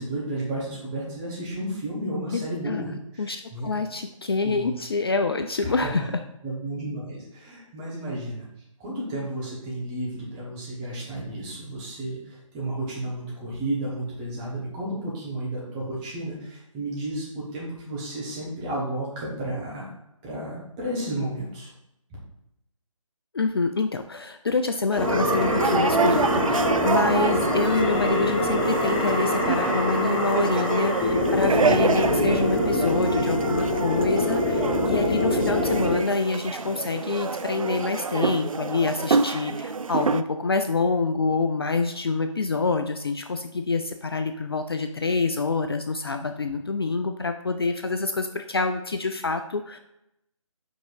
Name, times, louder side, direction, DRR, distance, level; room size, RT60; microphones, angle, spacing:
voice 1, 0.0-3.7 4.4-4.7 5.6-8.5 8.8-19.8 20.2-21.7, right 1 dB, 15° right, -6 dB, 1.5 m, -32 dB
voice 2, 2.3-2.8 3.2-6.1 23.3-49.8, left 4 dB, 45° left, 7 dB, 0.4 m, -26 dB
sound 1, 24.9-40.2, right 4 dB, 75° right, 0.4 m, -28 dB
sound 2, 25.0-36.0, left 1 dB, 10° left, 0.7 m, -24 dB
5.4 x 3.7 x 4.7 m, 0.83 s
figure-of-eight pair, 150°, 17 cm